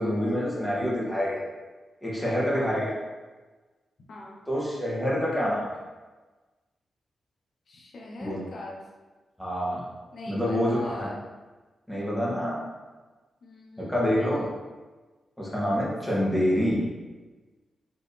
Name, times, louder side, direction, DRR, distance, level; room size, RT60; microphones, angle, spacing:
voice 1, 0.0-1.4 2.0-2.9 4.5-5.6 8.2-8.4 9.4-9.9 10.3-11.1 11.9-12.6 13.8-14.5 15.4-16.8, equal, 5° left, -6 dB, 1.4 m, -26 dB
voice 2, 2.5-2.8 4.1-4.4 7.7-8.8 10.1-11.3 13.4-14.5 16.3-16.7, left 2 dB, 60° left, -2 dB, 1.0 m, -42 dB
4.6 x 3.2 x 3.4 m, 1.3 s
cardioid pair, 95°, 0 cm